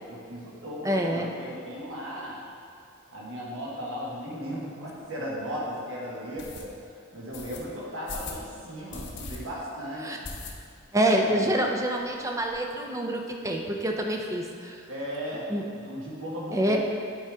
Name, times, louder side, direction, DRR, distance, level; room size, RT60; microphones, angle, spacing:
voice 1, 0.1-2.4 3.1-6.7 7.1-10.2 11.2-11.7 14.9-15.5 15.7-16.8, equal, 65° right, -5 dB, 1.4 m, -36 dB
voice 2, 0.8-1.3 10.0-10.2 10.9-14.8 15.5-15.7 16.5-16.8, right 1 dB, 15° right, 2 dB, 0.5 m, -26 dB
sound 1, 5.0-5.1 5.5-5.6 6.4-6.6 7.3-7.6 8.1-8.4 8.9-9.4 9.7-9.8 10.2-10.9 11.2-11.3 11.6-11.7 11.9-12.6, left 4 dB, 55° left, 0.8 m, -39 dB
8.2 x 4.9 x 3.5 m, 2.3 s
head